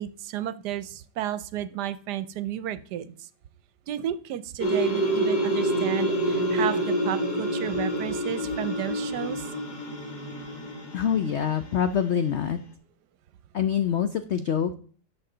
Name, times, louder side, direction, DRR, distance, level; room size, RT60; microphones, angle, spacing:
voice 1, 0.0-3.1 3.9-9.5, right 11 dB, 75° right, 14 dB, 1.2 m, -32 dB
sound 1, 4.6-11.7, right 1 dB, 30° left, 1.1 m, -27 dB
voice 2, 10.9-12.6 13.5-14.7, left 8 dB, 80° left, 10 dB, 0.6 m, -25 dB
11.0 x 6.3 x 3.8 m, 0.44 s
omnidirectional pair, 1.9 m